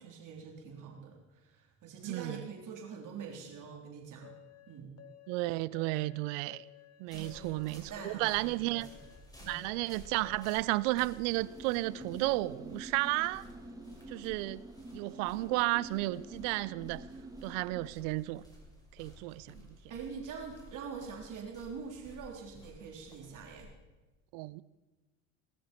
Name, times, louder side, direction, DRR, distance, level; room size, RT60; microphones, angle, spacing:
voice 1, 0.0-4.4 4.7-4.9 7.1-8.9 9.4-9.6 19.9-23.7, right 6 dB, 55° right, 3.7 m, -45 dB
voice 2, 2.0-2.4 5.3-6.6 7.0-8.9 9.5-13.5 14.1-14.6 14.9-17.0 17.4-18.4 19.0-19.8 24.3-24.6, right 20 dB, 75° right, 0.6 m, -33 dB
sound 1, 4.2-10.8, left 12 dB, 40° left, 1.3 m, -55 dB
sound 2, 7.1-23.6, equal, 10° left, 6.2 m, -55 dB
sound 3, 11.3-17.9, right 1 dB, 10° right, 2.2 m, -48 dB
19.0 x 13.0 x 4.5 m
hypercardioid pair, 70°, 38 cm